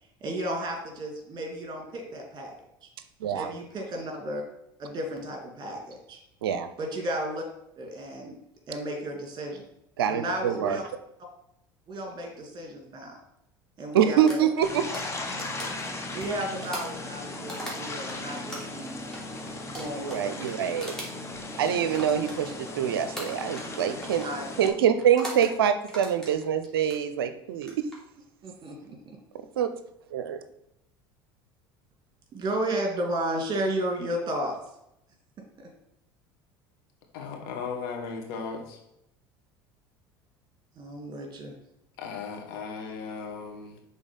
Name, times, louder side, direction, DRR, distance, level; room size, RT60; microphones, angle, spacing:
voice 1, 0.2-2.5 2.8-2.9 3.3-4.4 4.8-6.2 6.8-7.4 7.8-8.4 8.7-9.6 10.1-10.8 11.9-13.2 13.8-14.4 15.6-19.0 19.7-20.1 23.6-24.5 28.4-29.0 32.3-34.6 35.6-35.7 40.8-41.5, right 1 dB, 35° right, 2 dB, 2.5 m, -33 dB
voice 2, 3.2-3.5 6.4-6.7 10.0-10.8 13.9-14.9 19.9-21.0 21.6-24.3 24.6-27.9 29.3-29.7 30.1-30.4, right 9 dB, 80° right, 10 dB, 0.5 m, -25 dB
sound 1, 14.3-18.2 18.5-22.8 23.2-23.7 24.0-24.3 25.0-25.5 25.9-27.0 27.5-28.0, right 1 dB, 5° left, 2.7 m, -40 dB
sound 2, 14.6-24.7, left 2 dB, 25° left, 1.2 m, -37 dB
voice 3, 37.1-38.8 42.0-43.8, left 5 dB, 70° left, 2 dB, 1.5 m, -36 dB
6.3 x 3.9 x 5.3 m, 0.80 s
hypercardioid pair, 75°, 12 cm